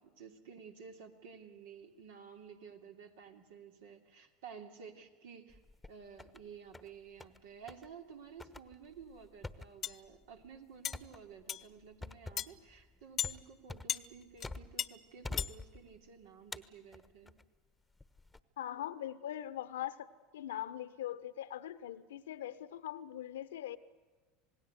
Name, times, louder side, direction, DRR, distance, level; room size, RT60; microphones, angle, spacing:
voice 1, 0.0-5.6 5.9-17.4, right 6 dB, 75° right, 4 dB, 2.9 m, -53 dB
sound 1, 5.5-6.4 6.7-7.4 7.7-7.9 8.4-14.9 15.2-16.1 16.5-17.4 18.0-18.4, left 3 dB, 10° left, 1.1 m, -47 dB
sound 2, 9.8-10.0 10.8-11.0 11.5-11.7 12.4-12.5 13.2-13.3 13.9-14.1 14.4-14.5 14.8-14.9 15.4-15.5, left 10 dB, 40° left, 0.8 m, -35 dB
voice 2, 18.6-23.8, left 12 dB, 85° left, 14 dB, 1.1 m, -41 dB
27.5 x 18.5 x 8.1 m, 1.4 s
hypercardioid pair, 90°, 0 cm